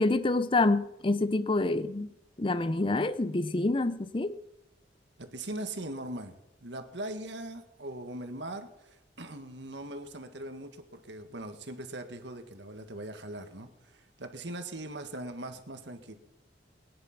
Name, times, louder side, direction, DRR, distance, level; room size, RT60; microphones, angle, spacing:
voice 1, 0.0-2.1 2.4-4.4, left 2 dB, 30° left, 0.6 m, -27 dB
voice 2, 5.2-16.1, right 1 dB, 70° right, 1.7 m, -40 dB
21.0 x 10.5 x 6.0 m
head